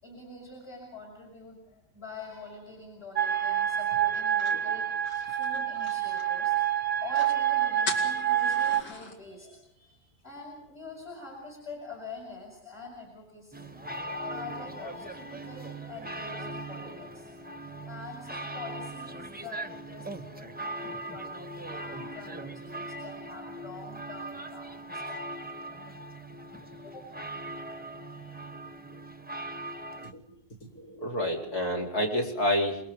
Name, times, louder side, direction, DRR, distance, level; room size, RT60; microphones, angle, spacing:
voice 1, 0.0-13.8 14.3-17.5 17.8-25.2 26.5-27.4 28.0-28.5, left 3 dB, 35° left, -2 dB, 6.2 m, -46 dB
sound 1, 3.1-8.8, right 10 dB, 45° right, 1.0 m, -27 dB
sound 2, 4.1-6.5 6.8-6.9 7.1-7.4 7.8-9.2, left 2 dB, 80° left, 3.7 m, -40 dB
sound 3, 13.5-30.1, right 1 dB, 5° right, 0.8 m, -40 dB
voice 2, 30.6-32.8, left 1 dB, 65° left, 0 dB, 4.9 m, -29 dB
28.0 x 22.0 x 5.5 m, 0.74 s
omnidirectional pair, 1.8 m